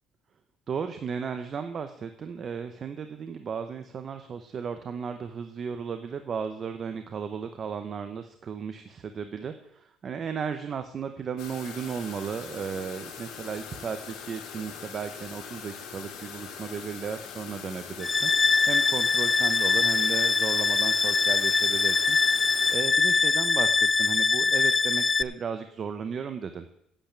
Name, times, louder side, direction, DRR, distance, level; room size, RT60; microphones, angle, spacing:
voice 1, 0.7-22.4 22.7-26.7, right 6 dB, 35° right, 8 dB, 0.7 m, -35 dB
sound 1, 11.4-22.8, left 7 dB, 75° left, 2.7 m, -42 dB
sound 2, 18.0-25.2, left 4 dB, 20° left, 0.3 m, -23 dB
8.8 x 8.0 x 8.7 m, 0.76 s
cardioid pair, 145°, 0 cm